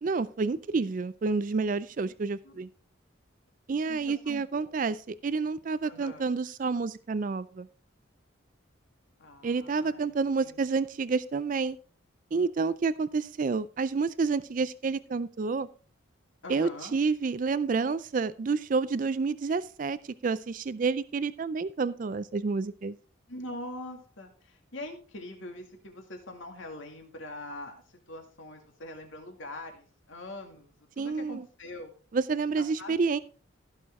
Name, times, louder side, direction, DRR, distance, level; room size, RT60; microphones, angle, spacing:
voice 1, 0.0-2.7 3.7-7.7 9.4-11.8 12.3-15.7 16.5-22.9 31.0-31.4 32.1-33.2, right 4 dB, 40° right, 16 dB, 0.3 m, -29 dB
voice 2, 3.9-5.0 5.8-6.3 9.2-10.6 16.4-17.0 23.3-31.9 32.6-33.0, left 1 dB, 70° left, 4 dB, 2.2 m, -43 dB
15.0 x 6.5 x 3.6 m, 0.40 s
head